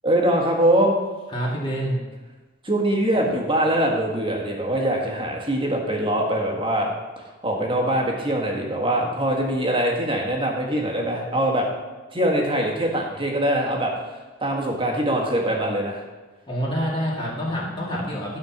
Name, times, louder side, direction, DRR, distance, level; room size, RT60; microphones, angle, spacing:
voice 1, 0.0-1.0 2.6-6.9 7.4-11.7 12.1-13.9 14.4-16.0, right 1 dB, 25° right, -1 dB, 1.5 m, -23 dB
voice 2, 1.3-2.0 16.5-18.4, equal, 25° left, -5 dB, 2.2 m, -27 dB
12.5 x 4.4 x 5.9 m, 1.2 s
head